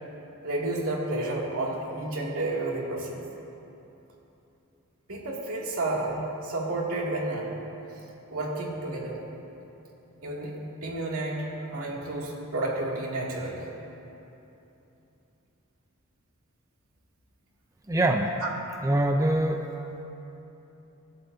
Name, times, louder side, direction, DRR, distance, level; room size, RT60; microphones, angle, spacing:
voice 1, 0.4-3.2 5.1-7.6 8.3-9.2 10.2-13.7, right 2 dB, 75° right, -3 dB, 2.6 m, -31 dB
voice 2, 17.9-18.3 18.8-19.7, right 1 dB, 15° right, 3 dB, 0.5 m, -23 dB
25.5 x 11.5 x 2.8 m, 3.0 s
head